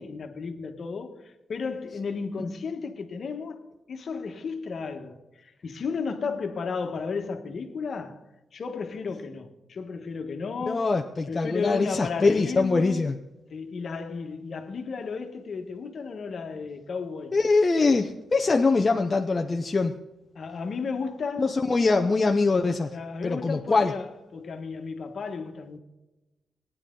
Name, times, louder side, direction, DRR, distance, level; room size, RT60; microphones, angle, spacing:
voice 1, 0.0-8.2 8.5-11.0 11.3-13.1 13.5-17.4 20.3-21.5 22.9-25.8, left 5 dB, 50° left, 1.3 m, -34 dB
voice 2, 10.7-13.1 17.3-19.9 21.4-22.9 23.2-23.9, left 3 dB, 25° left, 0.6 m, -23 dB
17.5 x 10.0 x 3.8 m
wide cardioid pair, 135°, 0 cm